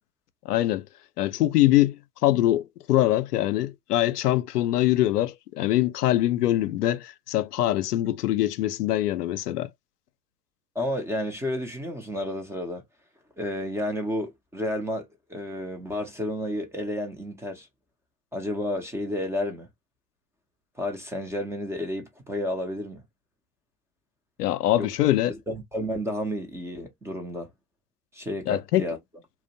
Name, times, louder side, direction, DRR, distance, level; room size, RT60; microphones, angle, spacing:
voice 1, 0.5-0.8 1.2-9.7 24.4-25.3 28.5-28.8, left 14 dB, 80° left, 0.5 m, -23 dB
voice 2, 10.8-12.8 13.4-17.7 18.3-19.7 20.8-23.0 24.8-24.9 25.3-27.5 28.1-29.0, left 1 dB, 5° right, 0.4 m, -31 dB
2.5 x 2.0 x 2.6 m
hypercardioid pair, 95°, 46 cm